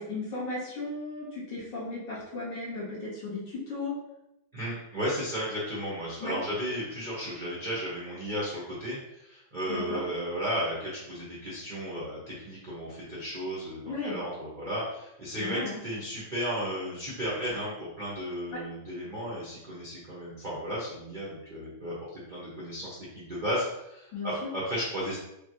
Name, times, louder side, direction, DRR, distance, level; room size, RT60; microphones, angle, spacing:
voice 1, 0.0-3.9 6.2-6.4 9.7-10.0 13.9-14.2 15.4-15.8 18.5-18.6 24.1-24.5, left 3 dB, 65° left, -7 dB, 2.0 m, -35 dB
voice 2, 4.5-25.2, equal, 45° right, -7 dB, 0.6 m, -34 dB
4.9 x 2.4 x 3.1 m, 0.87 s
omnidirectional pair, 2.2 m